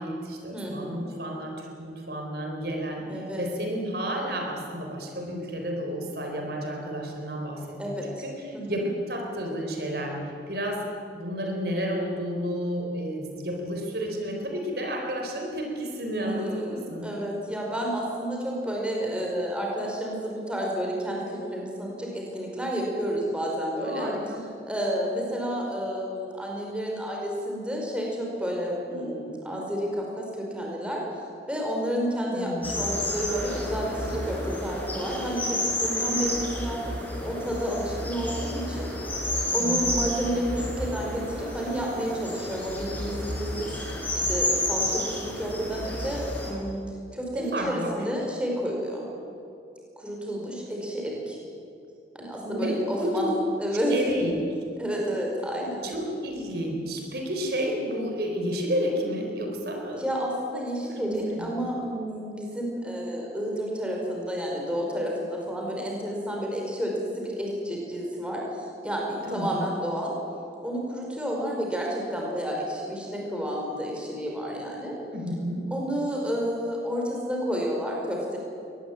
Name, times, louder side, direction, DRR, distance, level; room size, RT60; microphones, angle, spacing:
voice 1, 0.0-10.9 11.1-17.1 23.7-24.5 32.3-32.9 39.6-39.9 47.3-48.0 52.4-53.3 53.9-54.4 55.8-60.1 60.9-61.5 69.3-69.7 75.1-75.7, equal, 60° right, 2 dB, 4.0 m, -31 dB
voice 2, 0.5-1.0 3.1-3.4 7.8-8.2 8.5-8.8 16.2-24.1 24.7-36.8 37.2-38.9 39.5-43.7 44.1-46.2 46.5-46.8 47.1-49.1 50.0-51.4 52.1-53.9 54.8-55.8 59.9-70.1 70.6-74.9 75.7-78.4, equal, 5° right, -2 dB, 5.2 m, -30 dB
sound 1, 32.6-46.5, left 1 dB, 10° left, 5.6 m, -30 dB
23.5 x 19.5 x 9.0 m, 2.6 s
head